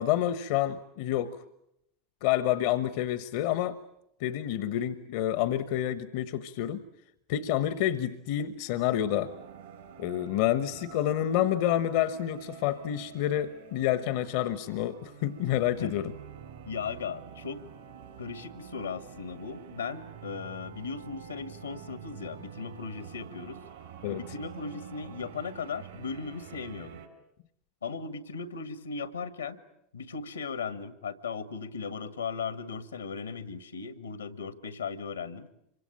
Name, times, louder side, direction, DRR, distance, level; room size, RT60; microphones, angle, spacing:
voice 1, 0.0-1.4 2.2-3.8 4.2-6.8 7.3-9.3 10.0-16.1 24.0-24.2, left 12 dB, 60° left, 14 dB, 1.1 m, -28 dB
sound 1, 8.7-27.1, right 8 dB, 75° right, 5.4 m, -47 dB
voice 2, 16.6-17.6 18.2-23.6 24.1-27.0 27.8-29.6 29.9-35.5, left 5 dB, 85° left, 13 dB, 1.7 m, -37 dB
26.5 x 24.5 x 8.8 m, 0.78 s
figure-of-eight pair, 80°, 0 cm